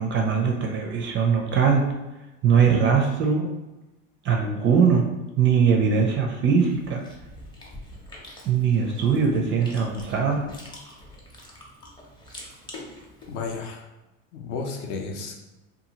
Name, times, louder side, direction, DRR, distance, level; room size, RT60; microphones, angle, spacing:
voice 1, 0.0-1.9 2.4-3.5 4.2-5.0 5.4-7.0 8.4-10.5, right 6 dB, 30° right, 1 dB, 0.4 m, -21 dB
Chewing mastication, 6.6-13.5, left 1 dB, 10° left, 0.6 m, -45 dB
voice 2, 13.3-13.9 14.3-15.4, left 4 dB, 55° left, 2 dB, 0.6 m, -32 dB
2.8 x 2.4 x 2.8 m, 1.0 s
supercardioid pair, 105°, 40 cm